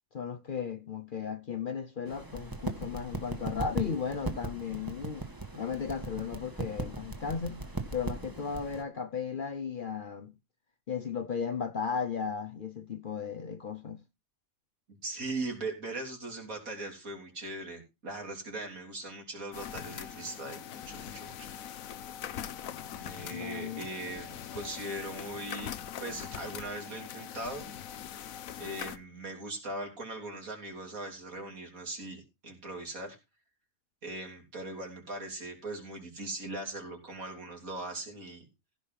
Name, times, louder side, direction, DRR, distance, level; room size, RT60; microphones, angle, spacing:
voice 1, 0.1-5.3 5.6-7.6 7.9-10.4 10.9-14.0 23.3-23.8, left 6 dB, 45° left, 0.7 m, -35 dB
sound 1, 2.1-8.8, right 2 dB, 15° right, 1.4 m, -38 dB
voice 2, 14.9-21.5 23.0-25.7 26.0-27.7 28.6-33.2 34.0-38.4, right 2 dB, 80° right, 3.9 m, -40 dB
sound 2, 19.5-29.0, left 9 dB, 75° left, 1.2 m, -42 dB
15.5 x 5.3 x 5.8 m
omnidirectional pair, 1.4 m